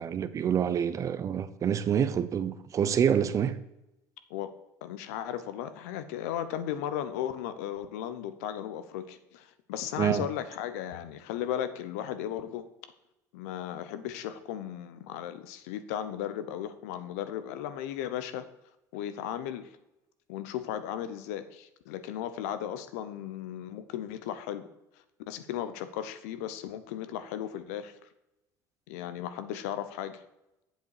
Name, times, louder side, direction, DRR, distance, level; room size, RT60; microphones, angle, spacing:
voice 1, 0.0-3.5 10.0-10.2, right 8 dB, 40° right, 0.7 m, -27 dB
voice 2, 4.8-12.6 13.3-18.5 18.9-19.7 20.3-24.7 25.3-28.1 28.9-30.2, left 10 dB, 85° left, 0.8 m, -36 dB
8.0 x 7.1 x 4.8 m
supercardioid pair, 90°, 8 cm